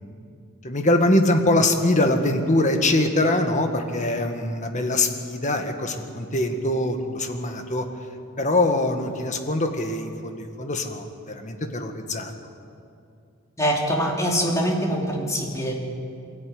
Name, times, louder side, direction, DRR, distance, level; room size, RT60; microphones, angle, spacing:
voice 1, 0.6-7.8 8.4-12.3, left 1 dB, 35° left, 5 dB, 1.7 m, -23 dB
voice 2, 13.6-15.7, equal, 15° left, -2 dB, 3.2 m, -24 dB
22.5 x 14.0 x 9.6 m, 2.5 s
head